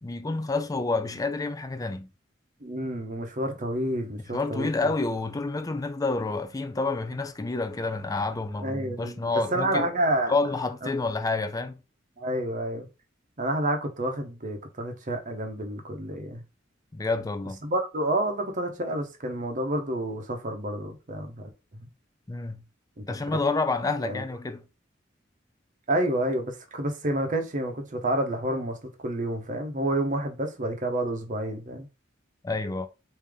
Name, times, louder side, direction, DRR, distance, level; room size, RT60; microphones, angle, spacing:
voice 1, 0.0-2.1 4.3-9.9 10.3-11.8 16.9-17.6 22.3-22.6 23.1-24.6 32.4-32.9, left 3 dB, 20° left, 0.4 m, -29 dB
voice 2, 2.6-4.9 8.6-10.3 12.2-12.9 13.4-16.4 17.6-21.5 23.0-23.1 24.0-24.2 25.9-31.9, right 1 dB, 45° right, 0.8 m, -29 dB
3.4 x 2.8 x 3.5 m
head